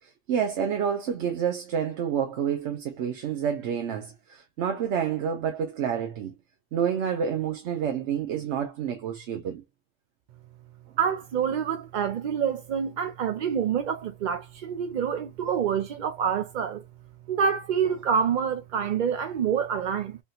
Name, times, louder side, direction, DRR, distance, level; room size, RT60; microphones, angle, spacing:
voice 1, 0.0-6.3 6.7-9.6, right 8 dB, 90° right, 1.0 m, -29 dB
voice 2, 11.0-16.8 17.3-20.2, right 7 dB, 55° right, 0.5 m, -27 dB
3.5 x 2.7 x 2.3 m
omnidirectional pair, 1.1 m